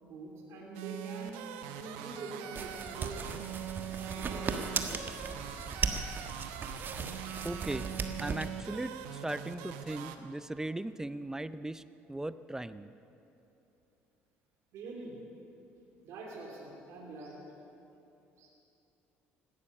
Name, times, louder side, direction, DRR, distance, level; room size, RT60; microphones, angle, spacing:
voice 1, 0.0-1.4 1.7-3.2 4.0-4.8 14.7-15.2 16.0-17.4 18.4-18.5, right 3 dB, 65° right, -2 dB, 3.0 m, -44 dB
sound 1, 0.7-10.2, right 9 dB, 85° right, 1.0 m, -42 dB
sound 2, 2.5-8.5, right 5 dB, 40° right, 1.3 m, -37 dB
voice 2, 7.4-7.9 8.2-11.8 12.1-12.9, right 1 dB, 10° right, 14 dB, 0.6 m, -38 dB
17.0 x 12.5 x 6.7 m, 2.9 s
supercardioid pair, 75°, 5 cm